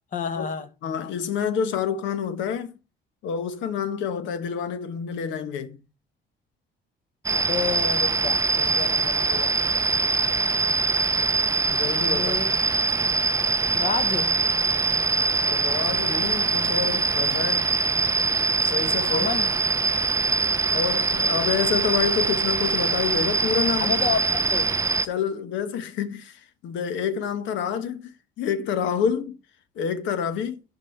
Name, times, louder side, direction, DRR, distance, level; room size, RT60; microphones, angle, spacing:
voice 1, 0.1-0.7 7.3-9.8 12.1-12.5 13.7-14.3 19.1-19.5 23.8-24.7, left 6 dB, 45° left, 1.4 m, -30 dB
voice 2, 0.8-2.7 3.2-5.8 11.7-12.5 15.4-17.7 18.6-19.3 20.7-24.0 25.0-29.4 29.7-30.6, left 7 dB, 90° left, 1.2 m, -28 dB
sound 1, 7.2-25.1, right 4 dB, 15° right, 0.5 m, -23 dB
11.5 x 4.3 x 4.5 m
cardioid pair, 145°, 19 cm